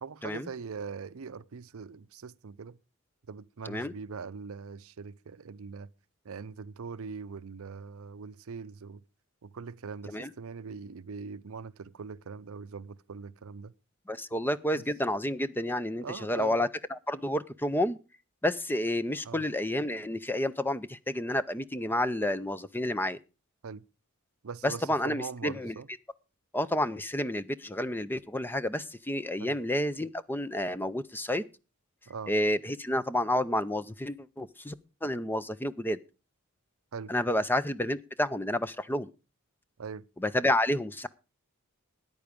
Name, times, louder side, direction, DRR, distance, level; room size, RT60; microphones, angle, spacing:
voice 1, 0.0-2.8 3.3-5.9 6.2-9.0 9.4-13.7 14.3-14.4 14.7-14.8 16.0-16.6 19.2-19.4 23.6-23.8 24.4-25.9 29.4-29.6 32.1-32.3 36.9-37.1 39.8-40.1, right 5 dB, 70° right, 0.6 m, -41 dB
voice 2, 14.1-18.0 18.4-23.2 24.6-25.7 26.5-31.4 32.3-34.7 35.0-36.0 37.1-39.1 40.2-41.1, left 1 dB, 10° left, 0.5 m, -30 dB
13.5 x 9.6 x 5.2 m
head